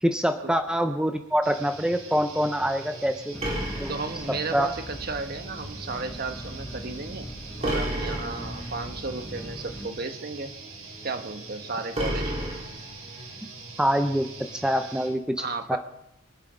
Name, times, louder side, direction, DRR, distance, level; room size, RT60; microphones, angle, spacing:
voice 1, 0.0-3.4 3.8-3.9 4.5-4.7 13.8-15.8, equal, 5° right, 7 dB, 0.6 m, -25 dB
sound 1, 1.4-15.1, right 3 dB, 80° right, 6.3 m, -43 dB
sound 2, 3.3-9.9, equal, 15° left, 2.8 m, -40 dB
sound 3, 3.4-4.8 7.6-8.8 11.9-13.3, right 1 dB, 30° right, 3.8 m, -31 dB
voice 2, 3.9-7.3 7.6-10.6 11.0-12.5 15.4-15.8, right 3 dB, 45° right, 7 dB, 1.2 m, -34 dB
24.0 x 8.3 x 5.1 m, 0.81 s
head